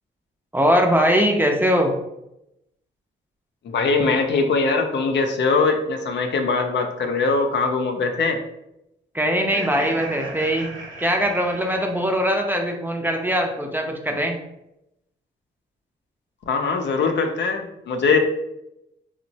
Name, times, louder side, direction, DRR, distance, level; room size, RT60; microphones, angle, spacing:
voice 1, 0.5-1.9 9.1-10.7 11.0-14.4, equal, 10° right, 2 dB, 0.5 m, -21 dB
voice 2, 3.6-8.4 16.5-18.2, left 4 dB, 65° left, 4 dB, 0.5 m, -21 dB
Laughter, 9.3-12.6, right 3 dB, 75° right, 0.7 m, -37 dB
2.9 x 2.1 x 2.6 m, 0.85 s
supercardioid pair, 55°, 20 cm